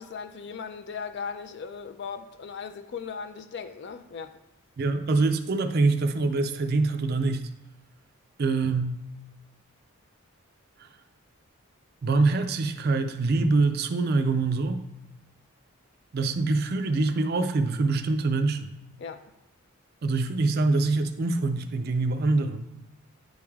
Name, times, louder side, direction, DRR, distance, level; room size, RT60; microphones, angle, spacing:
voice 1, 0.0-4.4 19.0-19.2, left 6 dB, 50° left, 0.4 m, -37 dB
voice 2, 4.8-7.5 8.4-8.9 12.0-14.8 16.1-18.7 20.0-22.7, right 3 dB, 45° right, 0.4 m, -24 dB
9.2 x 3.2 x 3.5 m
head